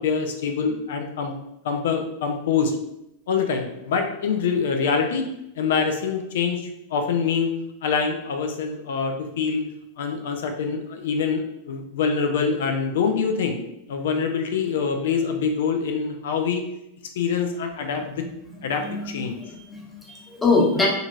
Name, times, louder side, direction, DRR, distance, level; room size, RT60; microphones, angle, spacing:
voice 1, 0.0-1.4 1.6-2.8 3.3-5.3 5.6-7.5 7.8-9.6 10.0-13.6 13.9-16.6 17.2-18.3 18.6-19.4, left 5 dB, 60° left, 5 dB, 0.4 m, -25 dB
voice 2, 18.7-19.1 19.5-20.9, left 3 dB, 10° left, -2 dB, 0.9 m, -23 dB
3.7 x 2.7 x 2.4 m, 0.82 s
figure-of-eight pair, 90°, 0 cm